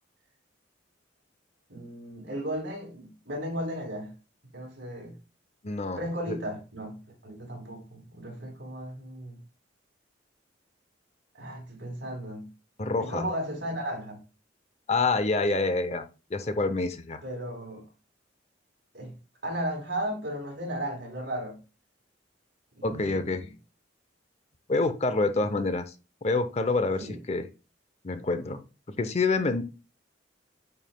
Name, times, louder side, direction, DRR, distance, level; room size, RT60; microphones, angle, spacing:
voice 1, 1.7-4.1 4.5-5.1 6.0-9.4 11.3-12.5 13.0-14.2 17.2-17.8 18.9-19.1 19.4-21.6 22.8-23.5 27.0-27.2, right 1 dB, 65° right, 3.5 m, -35 dB
voice 2, 5.6-6.0 6.3-6.4 12.8-13.2 14.9-16.0 16.3-17.2 22.8-23.5 24.7-25.9 26.2-27.4 28.0-28.6 28.9-29.6, left 3 dB, 35° left, 0.6 m, -27 dB
9.1 x 5.5 x 2.2 m
head